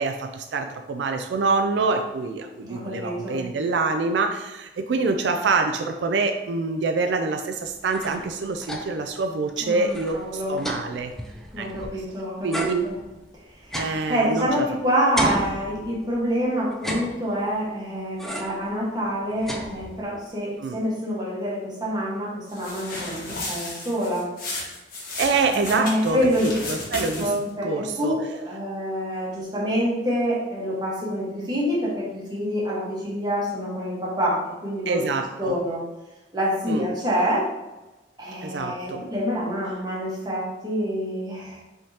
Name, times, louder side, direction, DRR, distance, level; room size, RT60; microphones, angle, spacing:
voice 1, 0.0-11.1 11.6-11.7 12.4-12.8 13.7-14.7 20.6-20.8 25.2-27.3 27.6-28.2 34.9-35.5 36.7-36.8 38.4-39.0, right 4 dB, 80° right, 5 dB, 0.4 m, -26 dB
voice 2, 2.5-3.5 9.6-10.6 11.5-12.9 13.6-13.8 14.1-24.3 25.5-26.5 27.2-35.1 35.4-35.8 36.3-37.5 38.2-41.6, equal, 25° right, -5 dB, 1.3 m, -27 dB
sound 1, 7.7-9.1 9.5-9.6 9.8-12.1 12.5-14.7 15.2-16.2 16.7-17.6 18.2-18.7 19.1-20.2, equal, ahead, 0.5 m, -33 dB
sound 2, 22.5-27.5, left 2 dB, 55° left, 1.2 m, -34 dB
5.3 x 3.6 x 2.8 m, 1.1 s
head